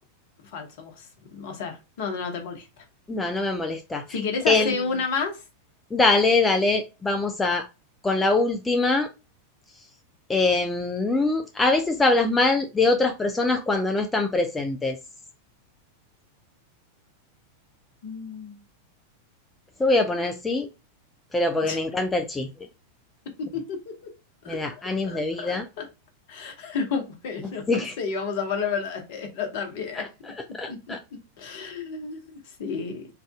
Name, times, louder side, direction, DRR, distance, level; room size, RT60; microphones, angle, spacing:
voice 1, 0.5-1.1 1.3-2.8 4.1-5.4 18.0-18.6 21.6-21.8 23.5-23.9 24.4-25.8 26.3-30.1 30.7-30.8 31.4-33.1, left 5 dB, 50° left, 1.0 m, -31 dB
voice 2, 3.1-4.0 4.5-4.8 5.9-7.7 8.0-9.1 10.3-15.0 19.8-20.7 21.3-22.5 24.5-25.6 27.7-27.9 30.0-31.0, left 3 dB, 10° left, 0.5 m, -23 dB
3.3 x 2.5 x 3.6 m
figure-of-eight pair, 90°, 0 cm